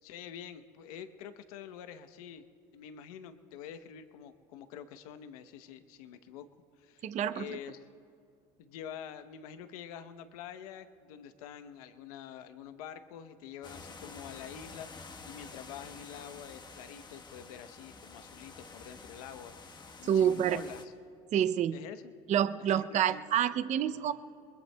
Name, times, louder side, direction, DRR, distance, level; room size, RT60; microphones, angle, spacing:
voice 1, 0.0-2.5 2.7-6.5 6.8-7.8 8.6-20.9 21.7-22.1 22.6-23.5 23.9-24.1, left 9 dB, 90° left, 10 dB, 0.9 m, -47 dB
voice 2, 7.0-7.5 20.0-20.6 21.3-21.8 22.3-24.1, right 10 dB, 40° right, 12 dB, 0.5 m, -28 dB
sound 1, 13.6-20.8, left 4 dB, 25° left, 1.2 m, -49 dB
28.0 x 21.5 x 2.2 m, 2.4 s
supercardioid pair, 105°, 18 cm